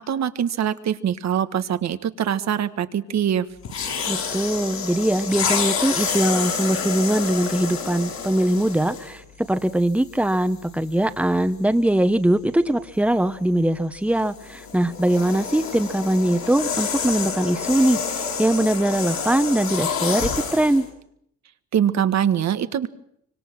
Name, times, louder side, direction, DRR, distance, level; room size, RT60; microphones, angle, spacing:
voice 1, 0.0-3.4 21.7-22.9, right 9 dB, 65° right, 11 dB, 1.5 m, -23 dB
sound 1, 3.6-9.2 10.0-10.2 14.2-20.8, left 6 dB, 65° left, 6.1 m, -28 dB
voice 2, 4.1-20.9, right 1 dB, 5° right, 10 dB, 1.3 m, -21 dB
25.0 x 25.0 x 6.1 m, 0.70 s
cardioid pair, 90°, 30 cm